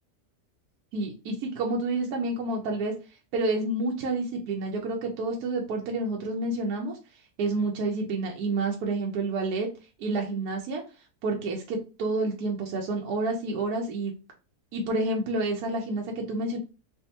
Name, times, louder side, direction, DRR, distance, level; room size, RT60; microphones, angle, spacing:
voice 1, 0.9-7.0 7.4-9.7 10.0-10.8 11.2-14.1 14.7-16.6, right 2 dB, 75° right, 0 dB, 1.1 m, -29 dB
3.4 x 2.6 x 2.8 m, 0.32 s
omnidirectional pair, 1.7 m